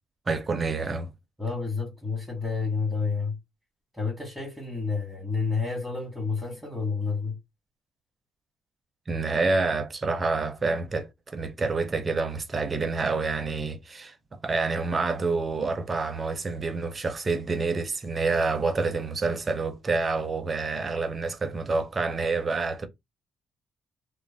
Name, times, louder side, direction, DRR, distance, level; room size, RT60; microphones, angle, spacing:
voice 1, 0.3-1.1 9.1-14.1 14.4-22.9, right 3 dB, 35° right, 0.6 m, -28 dB
voice 2, 1.4-3.4 3.9-7.4, left 4 dB, ahead, 1.2 m, -29 dB
2.5 x 2.0 x 3.3 m
cardioid pair, 90°, 0 cm